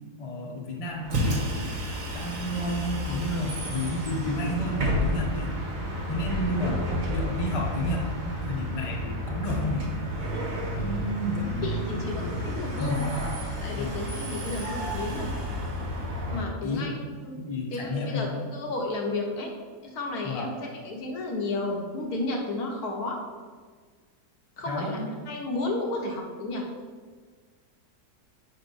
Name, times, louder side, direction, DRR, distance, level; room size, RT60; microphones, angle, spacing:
voice 1, 0.2-1.8 2.1-5.6 6.1-9.9 10.8-12.3 12.8-13.0 13.8-14.0 16.3-17.1 17.4-18.5 20.2-20.5 24.7-25.1, left 1 dB, 30° left, -1 dB, 0.7 m, -31 dB
Bus, 1.0-16.4, equal, 60° right, 1.5 m, -31 dB
voice 2, 11.6-13.0 13.6-15.3 16.3-16.9 17.2-17.4 17.7-19.5 19.8-23.2 24.6-25.0 25.3-26.6, left 2 dB, 70° left, 1 dB, 1.3 m, -32 dB
5.2 x 3.9 x 5.3 m, 1.5 s
omnidirectional pair, 1.7 m